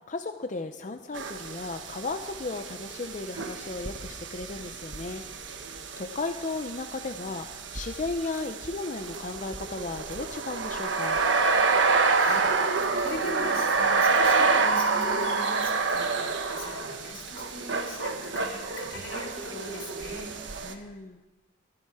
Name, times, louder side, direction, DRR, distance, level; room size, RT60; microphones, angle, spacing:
voice 1, 0.1-11.2 20.6-21.2, left 3 dB, 40° left, 6 dB, 0.6 m, -35 dB
sound 1, 1.1-20.7, right 4 dB, 70° right, 1.1 m, -28 dB
voice 2, 12.1-20.9, left 2 dB, 90° left, -1 dB, 3.8 m, -40 dB
16.5 x 11.5 x 4.8 m, 1.1 s
head